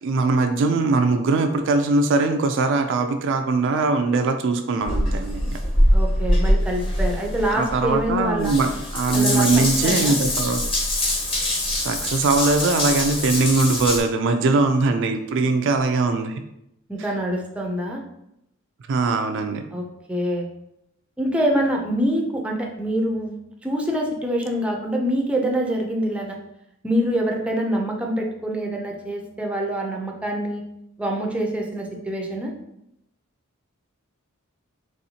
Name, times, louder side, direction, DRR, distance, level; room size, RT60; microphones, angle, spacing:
voice 1, 0.0-5.6 7.5-10.6 11.8-16.4 18.9-19.6, right 3 dB, 60° right, 6 dB, 0.4 m, -21 dB
Water tap faucet / Bathtub (filling or washing) / Drip, 4.8-14.0, left 1 dB, 25° left, 1.0 m, -23 dB
voice 2, 5.9-8.5 9.1-10.2 16.9-18.0 19.7-20.5 21.2-23.4 23.6-26.4 26.8-30.6 31.0-32.5, equal, 5° right, 0 dB, 0.5 m, -25 dB
4.2 x 3.1 x 2.8 m, 0.81 s
head